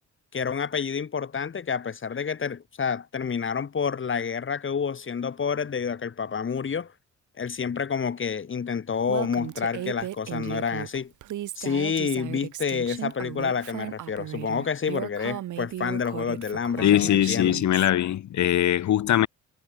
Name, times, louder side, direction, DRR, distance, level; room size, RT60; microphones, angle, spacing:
voice 1, 0.3-6.9 7.4-11.1 11.6-17.6, left 6 dB, 40° left, 3.6 m, -29 dB
Female speech woman speaking, 9.1-17.9, right 13 dB, 80° right, 3.9 m, -36 dB
voice 2, 16.8-19.3, left 11 dB, 70° left, 3.3 m, -21 dB
cardioid pair, 90°, 30 cm